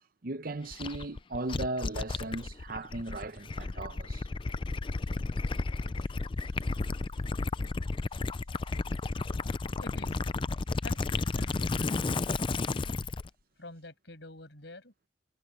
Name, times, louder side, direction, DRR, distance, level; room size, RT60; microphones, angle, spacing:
voice 1, 0.2-4.3, right 2 dB, 50° right, 0.8 m, -37 dB
Gurgling / Liquid, 0.7-13.3, left 3 dB, 25° left, 0.4 m, -32 dB
voice 2, 9.8-10.2 10.8-11.0 11.3-12.7 13.6-15.1, left 2 dB, 65° left, 7.8 m, -48 dB
head